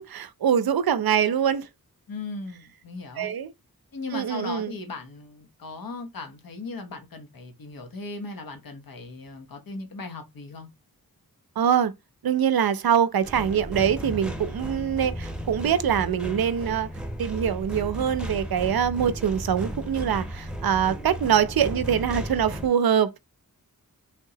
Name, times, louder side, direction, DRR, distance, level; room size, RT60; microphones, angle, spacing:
voice 1, 0.0-1.7 3.2-3.5 4.1-4.7 11.6-11.9 12.2-16.9 17.2-23.2, right 8 dB, 80° right, 0.5 m, -24 dB
voice 2, 2.1-3.3 3.9-10.7, left 3 dB, 75° left, 0.9 m, -38 dB
sound 1, 13.2-22.7, equal, 5° right, 0.7 m, -35 dB
3.5 x 2.8 x 2.7 m
wide cardioid pair, 65°, 36 cm